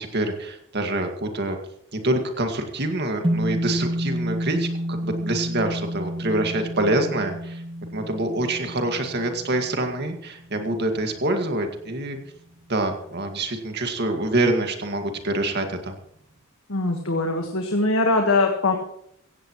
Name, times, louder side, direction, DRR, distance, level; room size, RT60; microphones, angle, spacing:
voice 1, 0.0-1.6 1.9-7.6 7.9-12.2 12.7-16.0, right 2 dB, 50° right, 5 dB, 2.0 m, -26 dB
sound 1, 3.2-11.7, equal, 25° right, 1.7 m, -30 dB
voice 2, 16.7-18.8, left 2 dB, 65° left, 3 dB, 1.6 m, -22 dB
16.5 x 16.0 x 3.2 m, 0.71 s
head